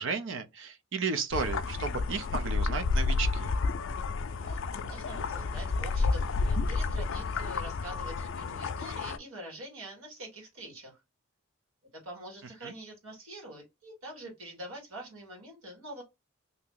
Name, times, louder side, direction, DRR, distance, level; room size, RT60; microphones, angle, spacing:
voice 1, 0.0-3.5 12.6-12.7, right 5 dB, 65° right, 0.5 m, -33 dB
sound 1, 1.3-9.2, left 4 dB, 65° left, 0.4 m, -30 dB
voice 2, 4.3-11.0 12.0-16.0, right 1 dB, 90° right, 1.8 m, -45 dB
2.9 x 2.7 x 3.7 m
head